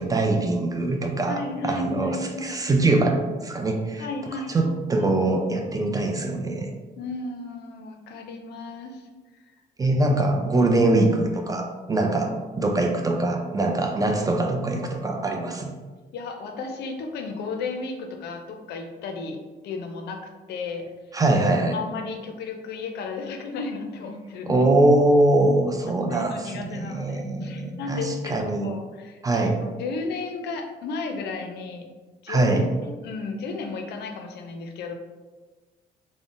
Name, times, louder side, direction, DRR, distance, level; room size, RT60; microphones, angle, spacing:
voice 1, 0.0-4.1 4.5-6.7 9.8-15.7 21.1-21.8 24.5-28.7 29.2-29.6 32.3-32.7, right 2 dB, 20° right, 3 dB, 0.4 m, -23 dB
voice 2, 1.3-2.6 4.0-5.1 7.0-9.1 16.1-19.4 19.6-20.9 21.6-24.6 26.1-31.9 32.2-34.9, left 3 dB, 70° left, 4 dB, 0.4 m, -34 dB
3.6 x 2.0 x 2.4 m, 1.3 s
cardioid pair, 95°, 18 cm